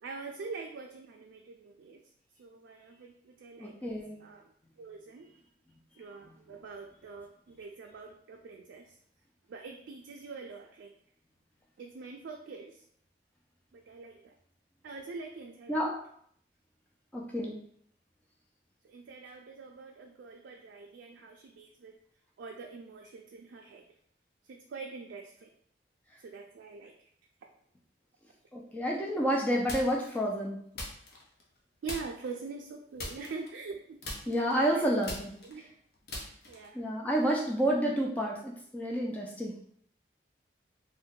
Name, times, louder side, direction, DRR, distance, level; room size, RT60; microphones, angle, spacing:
voice 1, 0.0-2.0 2.4-5.3 6.0-9.0 9.5-10.9 11.8-12.8 13.7-14.4 14.8-15.9 18.8-21.9 22.4-23.9 24.4-25.5 26.2-27.1 31.8-34.0 34.3-34.4 34.7-34.9 35.4-35.7 36.1-36.8, right 4 dB, 90° right, 1 dB, 0.3 m, -44 dB
voice 2, 3.6-4.2 15.7-16.0 17.1-17.6 28.5-30.6 34.3-35.3 36.7-39.5, equal, 10° left, -2 dB, 0.3 m, -29 dB
sound 1, 29.7-30.2 30.7-31.6 31.9-32.4 33.0-33.8 34.0-36.8, left 1 dB, 55° left, 0.6 m, -41 dB
2.6 x 2.2 x 3.6 m, 0.65 s
head